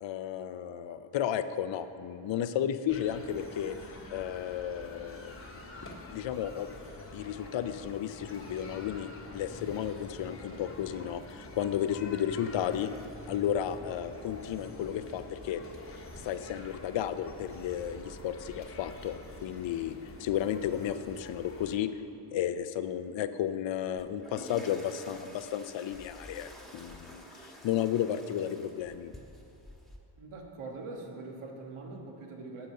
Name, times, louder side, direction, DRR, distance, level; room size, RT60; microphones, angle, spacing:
voice 1, 0.0-3.8 4.1-5.3 6.1-6.7 7.1-12.9 13.3-15.6 16.2-19.9 20.2-21.9 22.3-29.1, left 10 dB, 65° left, 11 dB, 0.6 m, -33 dB
sound 1, 2.9-21.7, left 2 dB, 25° left, 1.1 m, -47 dB
sound 2, 24.0-30.0, equal, ahead, 1.3 m, -49 dB
voice 2, 30.2-32.7, right 3 dB, 80° right, 1 dB, 1.6 m, -43 dB
10.0 x 6.6 x 6.6 m, 2.7 s
wide cardioid pair, 115°, 50 cm